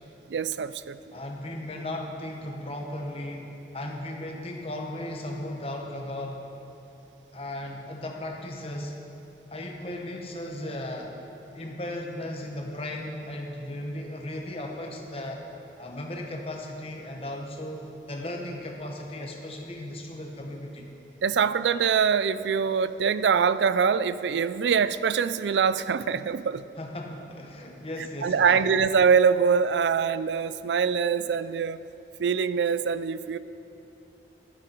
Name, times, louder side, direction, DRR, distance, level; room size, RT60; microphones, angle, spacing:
voice 1, 0.3-1.0 21.2-26.7 28.2-31.8 32.2-33.4, right 6 dB, 85° right, 15 dB, 0.4 m, -24 dB
voice 2, 1.1-6.4 7.3-9.0 9.5-11.1 11.5-15.4 15.8-20.9 26.8-28.6, left 1 dB, 35° left, 1 dB, 1.2 m, -36 dB
13.5 x 12.0 x 4.5 m, 2.9 s
head